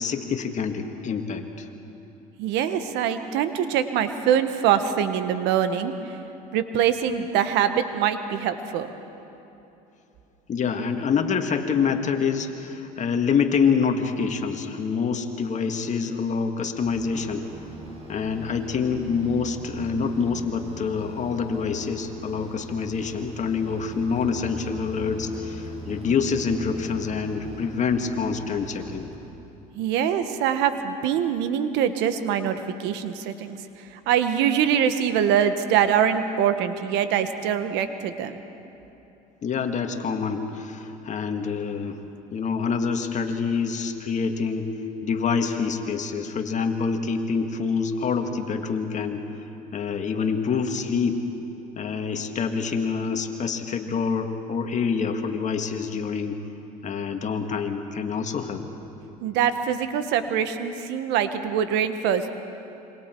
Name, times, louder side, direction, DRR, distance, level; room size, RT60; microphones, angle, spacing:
voice 1, 0.0-1.7 10.5-17.5 18.1-29.1 39.4-42.0 42.3-44.8 45.0-49.4 49.7-51.2 51.8-56.4 56.8-58.6, left 5 dB, 40° left, 5 dB, 1.9 m, -26 dB
voice 2, 2.4-5.9 6.5-8.9 29.8-38.4 59.2-62.4, right 9 dB, 70° right, 10 dB, 1.3 m, -24 dB
sound 1, 16.7-29.6, right 1 dB, 35° right, 5.9 m, -40 dB
27.0 x 24.0 x 4.6 m, 2.9 s
supercardioid pair, 80°, 19 cm